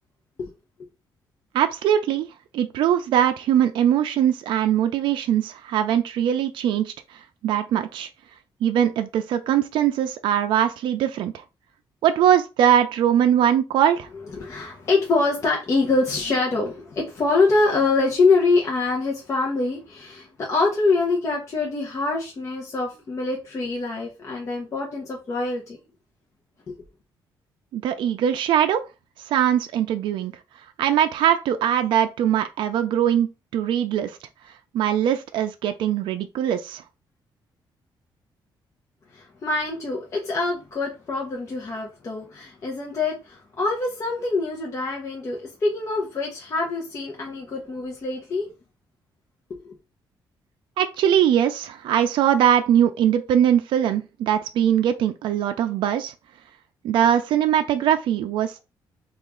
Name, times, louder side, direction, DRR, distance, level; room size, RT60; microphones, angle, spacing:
voice 1, 1.5-2.3 2.5-6.9 7.4-8.1 8.6-11.4 12.0-14.1 27.7-28.8 29.3-30.3 30.8-34.2 34.7-36.8 50.8-56.1 56.8-58.6, right 10 dB, 80° right, 0.4 m, -21 dB
voice 2, 14.3-25.8 26.7-26.8 39.1-48.5 49.5-49.7, left 3 dB, 35° left, 0.7 m, -24 dB
2.9 x 2.4 x 3.6 m
cardioid pair, 135°, 8 cm